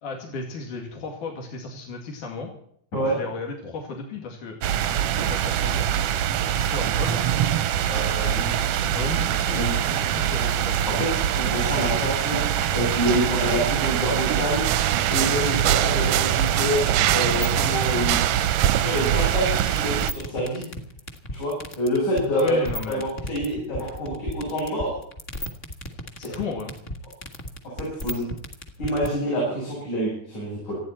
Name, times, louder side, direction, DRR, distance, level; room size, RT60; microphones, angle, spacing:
voice 1, 0.0-2.5 3.1-4.6 5.2-5.9 6.5-7.2 7.9-11.1 22.3-23.0 26.2-26.8, left 4 dB, 90° left, 1 dB, 3.9 m, -34 dB
sound 1, 4.6-20.1, right 10 dB, 70° right, 1.5 m, -24 dB
voice 2, 11.4-12.4 12.7-14.6 15.1-18.3 18.8-20.7 21.3-22.6 22.9-25.0 26.2-26.3 27.8-28.2 28.8-30.8, equal, 70° left, -6 dB, 9.4 m, -27 dB
sound 2, 14.6-19.7, right 13 dB, 90° right, 2.2 m, -25 dB
sound 3, 14.9-29.1, equal, 30° left, 1.7 m, -34 dB
28.0 x 9.7 x 4.4 m, 0.66 s
omnidirectional pair, 3.5 m